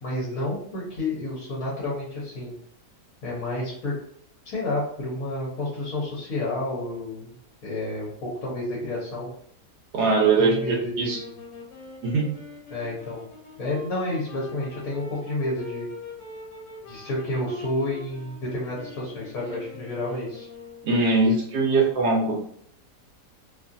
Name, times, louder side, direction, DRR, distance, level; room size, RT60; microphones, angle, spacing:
voice 1, 0.0-2.5 3.2-3.9 4.4-7.4 7.6-9.3 10.4-11.3 12.7-13.2 13.6-15.9 16.9-20.5, left 1 dB, 55° left, -5 dB, 1.3 m, -30 dB
voice 2, 9.9-11.2 12.0-12.3 20.8-22.4, right 3 dB, 75° right, -2 dB, 1.1 m, -21 dB
sound 1, 11.0-21.0, left 4 dB, 90° left, 1.5 m, -43 dB
3.0 x 2.4 x 2.6 m, 0.67 s
omnidirectional pair, 1.8 m